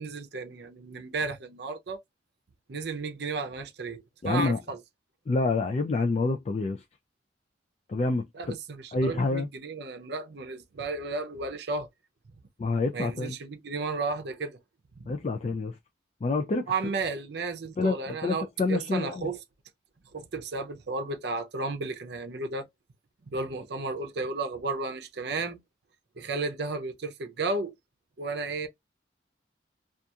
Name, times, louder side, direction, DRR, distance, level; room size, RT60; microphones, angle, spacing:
voice 1, 0.0-2.0 2.7-4.8 8.3-11.9 12.9-14.6 15.0-15.1 16.7-19.4 20.1-22.7 23.3-25.6 26.2-27.7 28.2-28.7, right 3 dB, 60° right, 0.6 m, -33 dB
voice 2, 4.2-4.6 5.3-6.8 7.9-8.2 8.9-9.5 12.6-13.4 15.1-15.8 16.2-16.7 17.8-19.3, left 3 dB, 35° left, 0.3 m, -27 dB
2.8 x 2.4 x 2.3 m
head